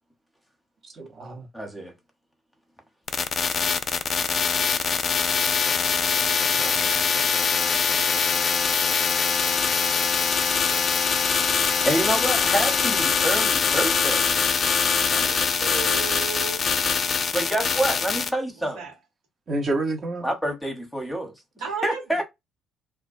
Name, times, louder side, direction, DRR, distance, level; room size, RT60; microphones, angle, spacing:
voice 1, 0.8-1.5 4.7-5.1 6.5-7.1 19.5-20.3, right 2 dB, 45° right, 0.8 m, -30 dB
voice 2, 1.5-1.9 11.7-14.3 17.3-18.9 20.2-21.3 21.8-22.2, right 1 dB, 5° left, 0.8 m, -27 dB
sound 1, 3.1-18.3, left 5 dB, 45° left, 0.4 m, -23 dB
voice 3, 15.1-16.7 18.7-18.9 21.6-22.2, right 6 dB, 85° right, 1.2 m, -34 dB
2.2 x 2.2 x 2.5 m
hypercardioid pair, 55°, 0 cm